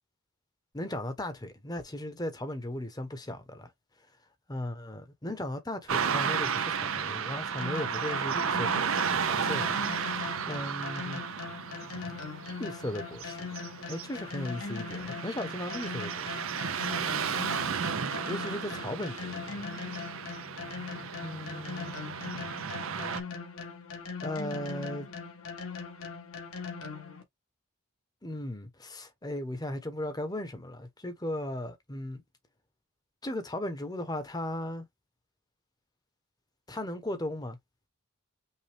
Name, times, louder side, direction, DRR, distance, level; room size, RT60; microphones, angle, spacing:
voice 1, 0.7-3.7 4.5-11.2 12.6-13.4 13.9-16.5 18.3-19.7 21.2-21.9 24.2-25.1 28.2-32.2 33.2-34.8 36.7-37.6, left 1 dB, 20° left, 0.9 m, -37 dB
Car passing by / Traffic noise roadway noise, 5.9-23.2, right 6 dB, 75° right, 0.7 m, -33 dB
sound 1, 7.6-27.2, left 5 dB, 85° left, 1.6 m, -40 dB
5.5 x 2.4 x 3.4 m
head